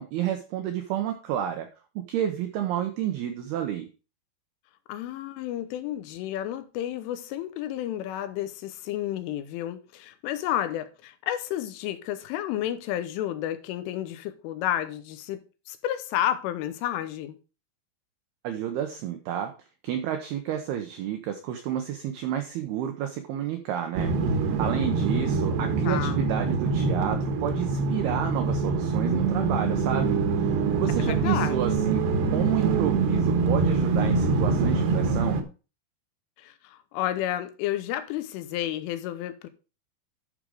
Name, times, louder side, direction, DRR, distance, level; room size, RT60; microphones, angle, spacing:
voice 1, 0.0-1.7 2.0-3.9 18.4-19.5 19.8-24.1 24.6-32.0 32.3-35.4, right 10 dB, 85° right, 2.2 m, -30 dB
voice 2, 4.9-17.4 25.8-26.2 31.0-31.9 36.4-39.5, left 12 dB, 85° left, 3.3 m, -31 dB
sound 1, 24.0-35.4, right 4 dB, 70° right, 2.6 m, -25 dB
11.5 x 5.1 x 4.8 m
omnidirectional pair, 5.6 m